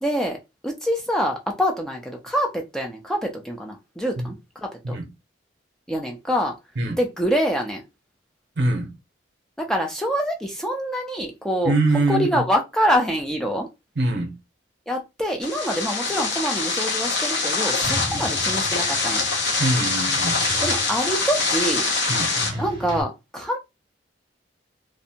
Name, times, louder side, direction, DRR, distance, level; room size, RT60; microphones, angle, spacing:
voice 1, 0.0-0.4 0.6-5.0 5.9-6.5 7.0-7.8 9.6-11.7 12.1-13.7 14.9-19.3 20.6-21.8 22.6-23.6, equal, 5° left, 0.3 m, -25 dB
voice 2, 8.6-8.9 11.6-12.4 14.0-14.4 18.0-18.2 19.6-20.4 22.1-22.3, right 2 dB, 65° right, 0.7 m, -23 dB
sound 1, 15.4-22.5, left 4 dB, 70° left, 0.7 m, -24 dB
sound 2, 17.8-23.0, right 1 dB, 25° right, 0.7 m, -35 dB
2.5 x 2.1 x 2.7 m
head